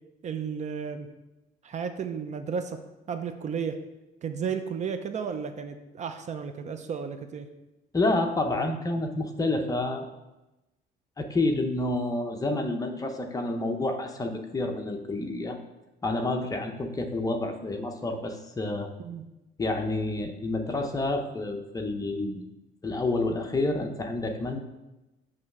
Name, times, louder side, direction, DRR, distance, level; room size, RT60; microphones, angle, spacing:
voice 1, 0.2-1.1 1.6-2.8 3.1-3.8 4.2-7.5 19.0-19.2, right 6 dB, 45° right, 8 dB, 0.6 m, -33 dB
voice 2, 7.9-10.1 11.2-15.6 16.0-18.9 19.6-22.4 22.8-24.6, left 2 dB, 20° left, 4 dB, 0.8 m, -29 dB
7.7 x 3.2 x 6.0 m, 1.0 s
cardioid pair, 110°, 17 cm